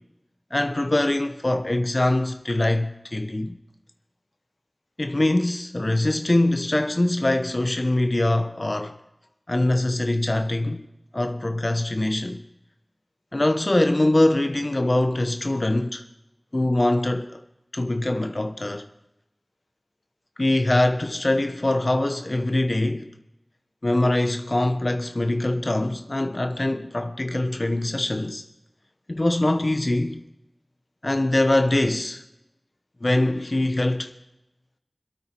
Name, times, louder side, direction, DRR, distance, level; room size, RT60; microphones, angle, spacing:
voice 1, 0.5-3.6 5.0-9.0 9.5-10.8 11.1-12.4 13.3-16.0 16.5-17.4 17.7-18.9 20.4-23.1 23.8-28.4 29.1-30.2 31.0-32.2 33.0-34.1, left 1 dB, 55° left, 0.8 m, -23 dB
24.5 x 8.9 x 4.5 m
wide cardioid pair, 40°, 0 cm